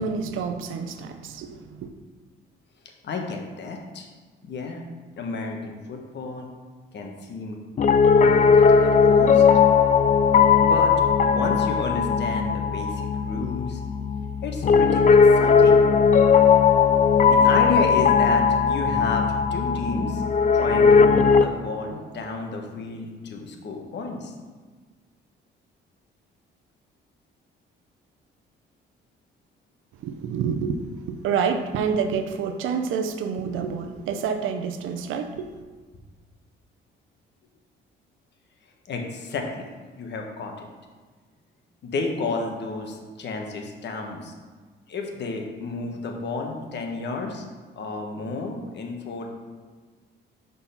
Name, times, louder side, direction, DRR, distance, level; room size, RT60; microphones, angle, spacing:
voice 1, 0.0-1.9 30.0-30.8 31.1-35.5, right 6 dB, 85° right, 7 dB, 0.7 m, -28 dB
voice 2, 3.0-4.1 4.4-4.8 5.2-6.5 6.9-7.6 8.1-9.4 10.6-10.9 11.2-13.8 14.4-15.8 17.3-20.2 20.6-24.3 38.9-39.7 40.0-40.7 41.8-44.3 44.9-47.4 47.8-49.3, left 3 dB, 60° left, 2 dB, 1.2 m, -31 dB
Piano, 7.8-21.5, left 6 dB, 40° left, 0.4 m, -18 dB
6.2 x 4.1 x 5.6 m, 1.4 s
cardioid pair, 90°, 20 cm